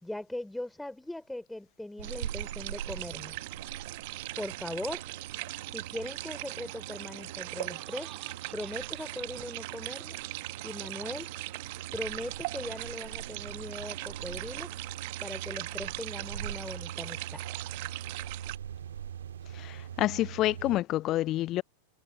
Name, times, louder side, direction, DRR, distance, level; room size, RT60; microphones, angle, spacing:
voice 1, 0.0-3.3 4.4-5.0 5.7-8.1 8.5-10.2 10.6-11.3 11.9-14.7 15.2-17.4, left 1 dB, 5° left, 3.4 m, -40 dB
sound 1, 2.0-18.6, right 24 dB, 50° right, 1.1 m, -40 dB
sound 2, 2.0-20.8, right 9 dB, 65° right, 1.6 m, -43 dB
Laughter, 7.2-12.3, right 13 dB, 35° right, 3.5 m, -54 dB
voice 2, 19.6-21.6, left 15 dB, 35° left, 0.5 m, -28 dB
figure-of-eight pair, 90°, 0 cm